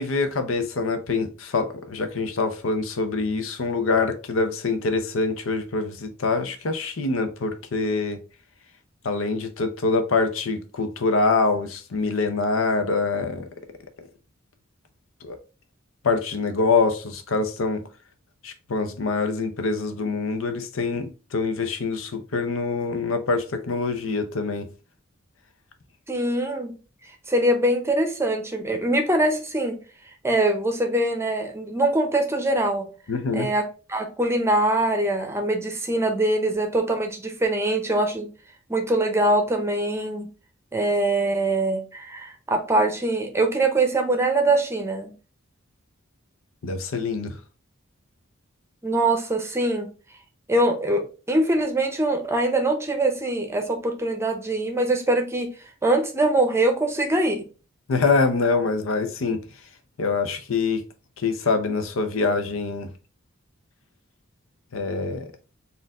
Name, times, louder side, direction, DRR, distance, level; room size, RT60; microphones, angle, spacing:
voice 1, 0.0-8.2 9.0-13.5 15.2-15.4 16.0-17.8 18.4-24.7 33.1-33.5 46.6-47.4 57.9-59.4 60.0-60.8 61.2-62.9 64.7-65.3, left 4 dB, 75° left, 0.6 m, -25 dB
voice 2, 26.1-26.8 27.3-29.8 30.2-32.9 33.3-33.6 33.9-38.3 38.7-40.3 40.7-45.1 48.8-49.9 50.5-55.5 55.8-57.4, right 1 dB, 15° right, 0.7 m, -23 dB
4.3 x 2.5 x 3.5 m
head